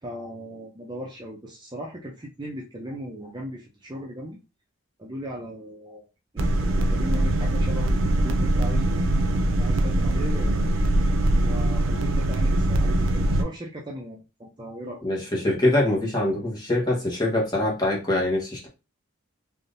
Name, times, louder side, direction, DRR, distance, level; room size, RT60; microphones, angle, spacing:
voice 1, 0.0-4.4 5.0-6.1 6.3-9.1 9.6-10.7 11.4-15.0, equal, 20° right, -2 dB, 0.5 m, -37 dB
sound 1, 6.4-13.4, right 1 dB, 70° right, 0.5 m, -22 dB
voice 2, 15.0-18.7, left 1 dB, 20° left, -3 dB, 1.1 m, -24 dB
3.4 x 2.5 x 2.6 m, 0.29 s
head